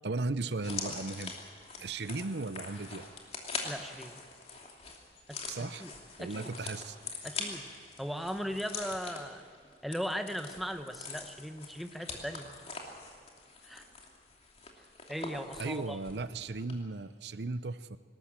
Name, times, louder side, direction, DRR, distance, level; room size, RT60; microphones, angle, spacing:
voice 1, 0.0-1.3 1.8-3.1 5.5-5.8 6.2-7.0 15.6-18.0, right 3 dB, 75° right, 14 dB, 0.7 m, -36 dB
sound 1, 0.6-16.3 16.6-16.7, left 4 dB, 35° left, 2.8 m, -43 dB
voice 2, 3.6-4.2 5.3-5.9 6.2-6.5 7.2-7.6 8.0-9.4 9.8-12.5 13.6-13.8 15.1-16.0, equal, ahead, 6 dB, 1.0 m, -38 dB
20.0 x 19.0 x 7.6 m, 2.3 s
head